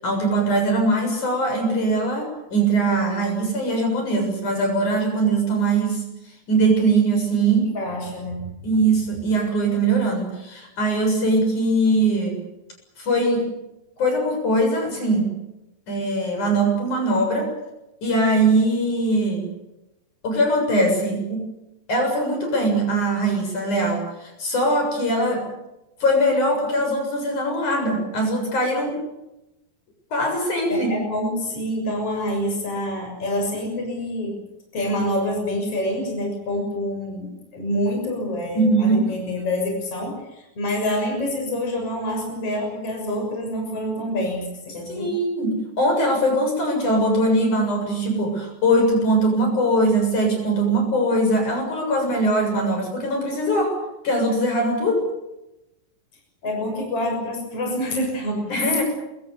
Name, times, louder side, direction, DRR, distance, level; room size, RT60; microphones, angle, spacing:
voice 1, 0.0-6.0 6.5-7.7 8.6-12.4 13.0-13.5 14.0-15.3 15.9-17.5 18.0-19.5 20.2-21.5 21.9-25.5 26.0-29.0 30.1-30.9 38.5-39.1 44.9-53.7 54.0-55.0 58.5-58.8, right 1 dB, 55° left, 3 dB, 8.6 m, -21 dB
voice 2, 7.7-8.4 30.7-34.4 34.7-45.1 56.4-58.5, left 1 dB, 40° left, 1 dB, 7.6 m, -27 dB
28.0 x 24.0 x 7.0 m, 0.92 s
omnidirectional pair, 4.0 m